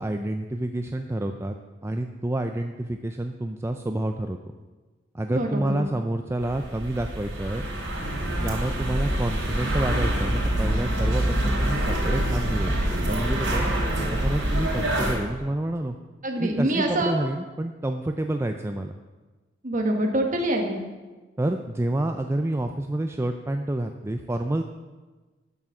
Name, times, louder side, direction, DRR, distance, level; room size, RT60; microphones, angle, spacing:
voice 1, 0.0-1.6 1.8-4.4 5.1-7.7 8.4-12.7 13.1-13.7 14.1-16.0 16.4-18.9 21.4-24.6, right 1 dB, 15° right, 5 dB, 0.4 m, -28 dB
voice 2, 5.3-5.8 16.2-17.1 19.6-20.8, right 1 dB, 40° right, 2 dB, 1.4 m, -25 dB
sound 1, 6.4-15.1, right 1 dB, 75° right, 3.7 m, -26 dB
11.0 x 6.1 x 7.1 m, 1.3 s
head